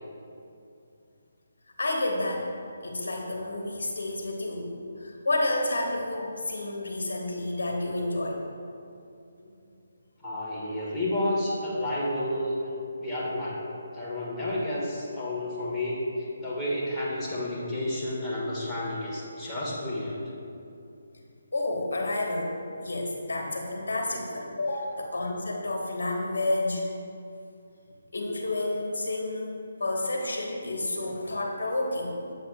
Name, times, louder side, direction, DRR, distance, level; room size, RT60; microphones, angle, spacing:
voice 1, 1.8-2.5 2.8-4.7 5.0-8.4 21.5-22.5 22.8-26.8 28.1-32.1, left 2 dB, 70° left, 0 dB, 1.2 m, -30 dB
voice 2, 10.2-12.7 13.0-13.6 13.9-20.2, left 1 dB, 10° left, -9 dB, 1.6 m, -31 dB
7.6 x 7.5 x 2.3 m, 2.7 s
figure-of-eight pair, 145°, 0 cm